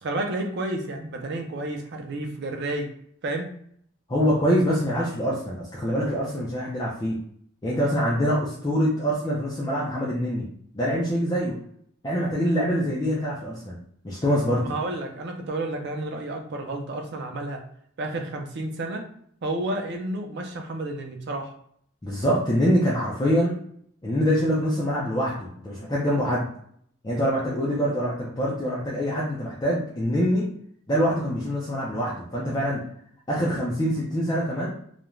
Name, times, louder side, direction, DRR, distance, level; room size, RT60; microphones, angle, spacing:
voice 1, 0.0-2.9 3.2-3.5 14.6-17.6 18.0-19.0 19.4-21.5, right 2 dB, 55° right, 3 dB, 0.5 m, -31 dB
voice 2, 4.1-7.2 7.6-10.4 10.7-11.5 12.0-13.8 14.0-14.6 22.0-23.5 24.0-26.5 27.0-30.4 30.9-32.8 33.3-34.7, equal, 20° left, -6 dB, 0.5 m, -24 dB
2.4 x 2.2 x 3.0 m, 0.65 s
head